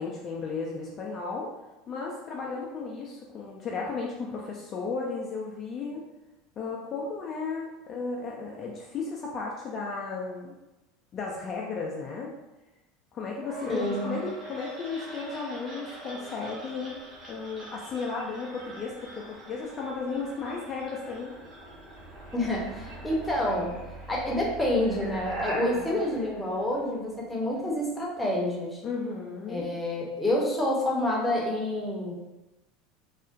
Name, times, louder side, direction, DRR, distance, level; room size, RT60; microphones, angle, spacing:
voice 1, 0.0-1.5 1.9-6.0 6.6-10.5 11.1-12.3 13.1-17.0 17.3-21.3 25.6-26.1 28.8-29.7, left 4 dB, 40° left, -2 dB, 0.4 m, -34 dB
sound 1, 13.4-27.3, right 1 dB, 35° right, 1.2 m, -42 dB
voice 2, 13.7-14.2 22.3-23.8 24.1-28.8 29.5-32.1, left 1 dB, 5° left, -4 dB, 0.7 m, -28 dB
2.4 x 2.0 x 2.5 m, 1.0 s
hypercardioid pair, 80°, 0 cm